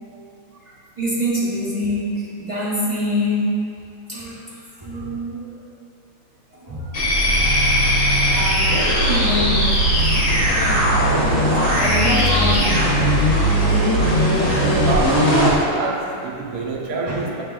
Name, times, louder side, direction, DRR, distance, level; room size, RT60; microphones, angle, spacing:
voice 1, 0.6-3.6 4.1-5.5 6.5-6.9 8.3-9.7 10.5-10.9 11.4-12.9 17.1-17.2, equal, 40° right, -11 dB, 0.4 m, -25 dB
sound 1, 6.9-15.6, equal, 50° left, 1.4 m, -18 dB
voice 2, 14.8-17.4, right 4 dB, 70° right, -2 dB, 1.0 m, -26 dB
6.9 x 3.4 x 2.3 m, 2.6 s
omnidirectional pair, 2.1 m